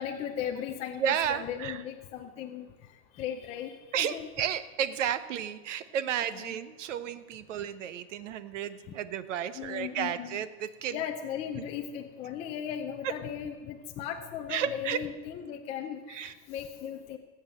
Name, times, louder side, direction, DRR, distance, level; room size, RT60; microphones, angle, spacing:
voice 1, 0.0-2.7 3.2-4.3 6.3-6.6 9.5-10.4 10.9-17.2, left 9 dB, 15° left, 3 dB, 0.5 m, -37 dB
voice 2, 1.0-1.8 3.9-11.0 11.6-11.7 13.0-13.1 14.5-15.0 16.1-16.3, right 9 dB, 75° right, 13 dB, 1.2 m, -32 dB
19.0 x 8.2 x 7.5 m, 1.3 s
supercardioid pair, 170°, 37 cm